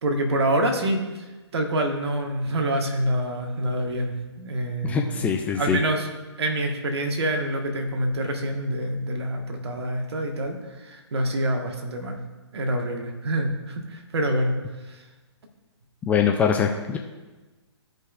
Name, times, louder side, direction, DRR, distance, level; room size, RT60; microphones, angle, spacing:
voice 1, 0.0-1.3 1.5-6.1 6.4-12.2 12.5-14.6 14.9-15.0, right 1 dB, 65° right, 3 dB, 1.4 m, -26 dB
voice 2, 4.8-5.8 16.1-17.0, left 7 dB, 10° left, 2 dB, 0.3 m, -23 dB
15.0 x 5.3 x 2.4 m, 1.2 s
figure-of-eight pair, 130°, 15 cm